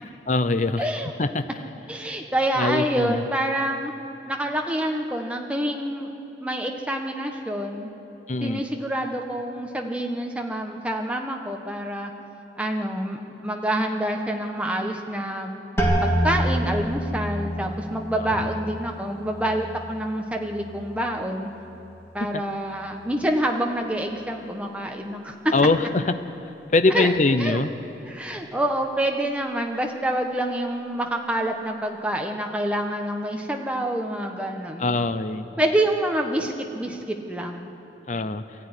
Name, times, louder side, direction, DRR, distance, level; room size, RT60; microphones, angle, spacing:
voice 1, 0.3-0.9 1.2-1.4 2.6-3.2 8.3-8.6 18.2-18.5 22.3-22.4 25.5-26.1 26.7-27.7 34.8-35.5 38.1-38.4, left 3 dB, 40° left, 10 dB, 0.7 m, -22 dB
voice 2, 0.8-1.1 1.9-3.9 4.3-6.1 6.4-7.9 8.4-12.1 12.6-15.5 16.0-21.5 22.1-25.5 26.9-27.1 27.4-27.6 28.0-34.9 35.6-37.7, right 1 dB, 5° right, 2 dB, 1.4 m, -27 dB
sound 1, 15.8-21.4 21.7-22.4 23.0-23.4, equal, 15° left, 2.8 m, -28 dB
22.0 x 14.0 x 9.8 m, 3.0 s
head